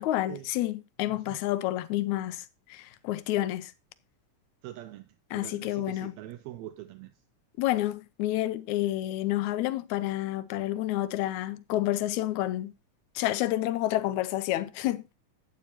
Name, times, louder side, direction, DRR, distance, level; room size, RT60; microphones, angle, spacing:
voice 1, 0.0-3.7 5.3-6.1 7.6-12.7 13.2-15.2, left 15 dB, 75° left, 2.0 m, -29 dB
voice 2, 1.1-1.4 4.6-7.2, right 13 dB, 75° right, 1.7 m, -43 dB
12.0 x 8.4 x 3.0 m
omnidirectional pair, 3.5 m